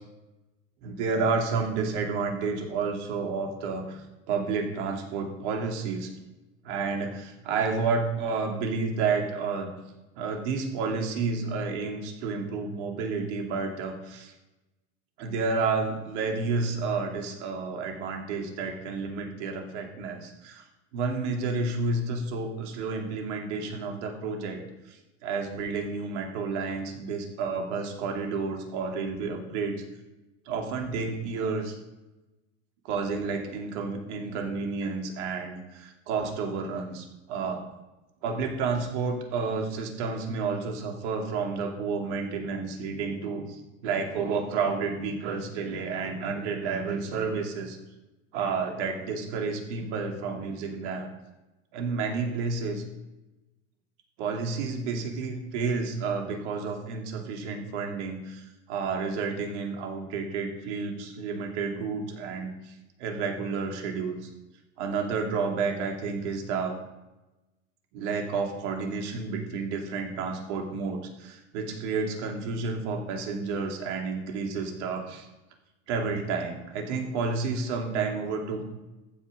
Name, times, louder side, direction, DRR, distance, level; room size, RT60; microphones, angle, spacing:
voice 1, 0.8-6.1 6.6-9.7 10.2-14.3 15.2-20.6 20.9-24.6 24.9-29.8 30.5-31.8 32.8-37.6 38.2-47.8 48.3-51.1 51.7-52.8 54.2-64.3 64.8-66.8 67.9-75.3 75.9-78.7, right 4 dB, 70° right, 2 dB, 2.8 m, -30 dB
14.5 x 6.0 x 5.3 m, 1.0 s
hypercardioid pair, 95°, 37 cm